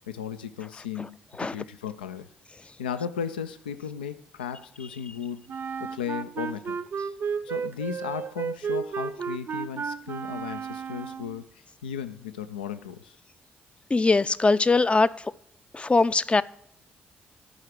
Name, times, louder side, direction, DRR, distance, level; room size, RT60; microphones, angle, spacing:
voice 1, 0.1-2.3 2.8-5.5 5.8-6.8 7.4-11.5 11.8-13.2, left 8 dB, 90° left, 11 dB, 0.4 m, -35 dB
Wind instrument woodwind instrument, 5.5-11.4, right 6 dB, 45° right, 0.6 m, -33 dB
voice 2, 13.9-15.1 15.7-16.4, left 3 dB, 20° left, 15 dB, 0.4 m, -21 dB
11.0 x 4.9 x 7.6 m, 0.67 s
hypercardioid pair, 45°, 5 cm